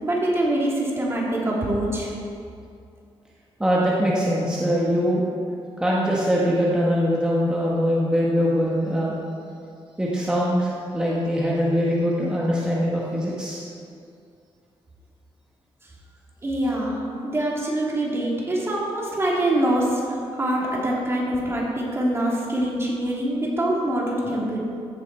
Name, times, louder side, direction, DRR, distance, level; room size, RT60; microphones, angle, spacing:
voice 1, 0.0-2.1 16.4-24.6, right 1 dB, 25° right, -4 dB, 2.6 m, -24 dB
voice 2, 3.6-5.3 5.8-9.2 10.0-13.6, equal, 10° right, -5 dB, 1.4 m, -22 dB
15.0 x 7.2 x 4.6 m, 2.4 s
wide cardioid pair, 135°, 11 cm